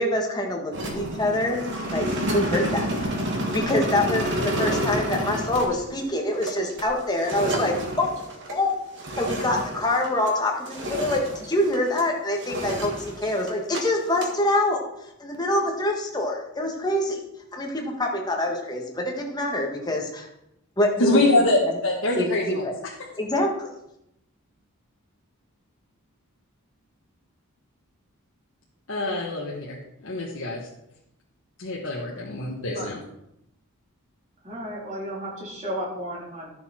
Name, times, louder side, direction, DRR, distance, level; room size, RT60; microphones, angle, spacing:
voice 1, 0.0-1.6 1.9-3.2 3.5-8.1 8.5-8.7 9.2-14.8 15.2-17.2 17.5-20.3 20.8-21.5 22.2-22.7 23.2-23.7, left 1 dB, 20° left, 1 dB, 1.5 m, -25 dB
sound 1, 0.7-10.4 10.7-12.1 12.4-13.8 14.1-14.3, right 1 dB, 55° right, 1.6 m, -29 dB
voice 2, 21.0-22.9 28.9-30.7 31.6-33.0, left 2 dB, 65° left, -3 dB, 1.4 m, -25 dB
voice 3, 34.4-36.5, equal, 30° right, -5 dB, 3.6 m, -33 dB
12.5 x 6.9 x 4.3 m, 0.82 s
head